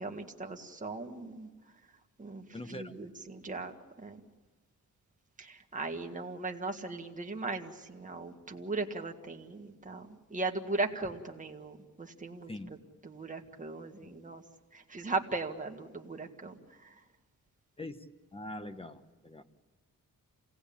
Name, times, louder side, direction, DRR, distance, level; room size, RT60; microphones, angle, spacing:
voice 1, 0.0-1.5 2.2-3.7 4.0-4.2 5.4-12.5 13.0-14.4 14.7-17.0, right 3 dB, 25° right, 3 dB, 1.8 m, -38 dB
voice 2, 2.5-2.9 12.5-12.7 14.0-14.1 17.8-18.1 18.3-19.4, left 1 dB, 15° left, 9 dB, 1.1 m, -43 dB
28.0 x 18.0 x 8.7 m, 1.3 s
wide cardioid pair, 145°, 33 cm